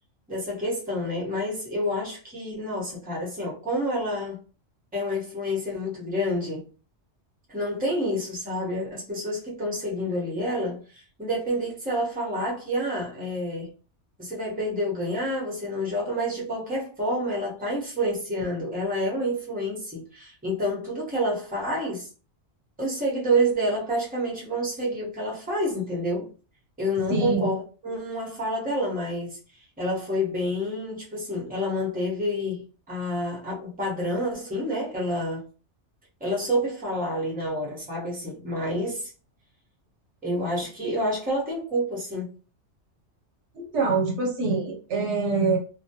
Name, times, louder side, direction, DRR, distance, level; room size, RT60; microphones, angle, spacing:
voice 1, 0.3-4.4 4.9-6.7 7.5-13.7 14.2-22.1 22.8-26.3 26.8-29.4 29.8-35.4 36.2-39.1 40.2-42.3, equal, 10° right, 0.7 m, -28 dB
voice 2, 27.1-27.5 43.5-45.6, right 3 dB, 80° right, 1.1 m, -25 dB
2.2 x 2.1 x 2.8 m
omnidirectional pair, 1.2 m